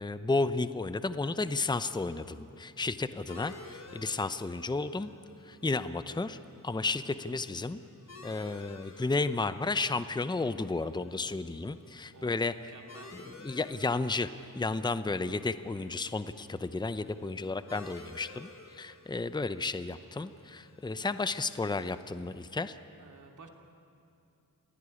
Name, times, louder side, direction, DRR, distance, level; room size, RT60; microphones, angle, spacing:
voice 1, 0.0-5.1 5.4-6.4 6.6-7.8 8.2-12.7 13.1-22.8, left 3 dB, 15° left, 12 dB, 0.7 m, -33 dB
sound 1, 3.3-22.4, left 3 dB, 50° left, 2.9 m, -54 dB
voice 2, 12.7-13.2 23.0-23.5, right 4 dB, 65° right, 2 dB, 2.8 m, -52 dB
28.0 x 16.5 x 9.9 m, 2.6 s
wide cardioid pair, 115°, 34 cm